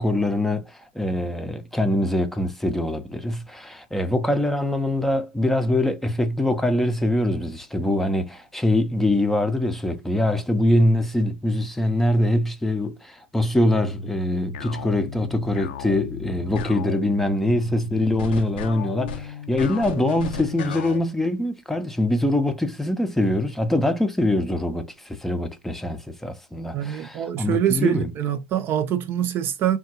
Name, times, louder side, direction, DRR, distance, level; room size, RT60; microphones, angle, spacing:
voice 1, 0.0-28.1, left 1 dB, 5° left, 0.5 m, -23 dB
sound 1, 13.8-21.0, left 4 dB, 75° left, 0.5 m, -34 dB
voice 2, 26.7-29.8, right 10 dB, 45° right, 0.5 m, -24 dB
3.4 x 2.3 x 2.7 m
hypercardioid pair, 95°, 5 cm